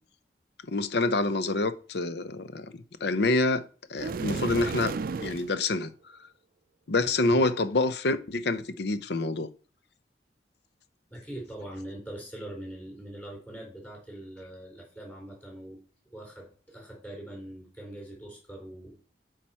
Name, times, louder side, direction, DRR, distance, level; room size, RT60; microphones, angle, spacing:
voice 1, 0.7-2.7 3.0-3.6 3.9-4.9 5.2-5.9 6.9-9.5, left 2 dB, 65° left, 0.7 m, -27 dB
sound 1, 4.0-5.5, right 4 dB, 55° right, 0.4 m, -33 dB
voice 2, 11.1-15.8 16.1-18.9, right 1 dB, 10° left, 4.4 m, -42 dB
8.7 x 5.0 x 4.5 m
head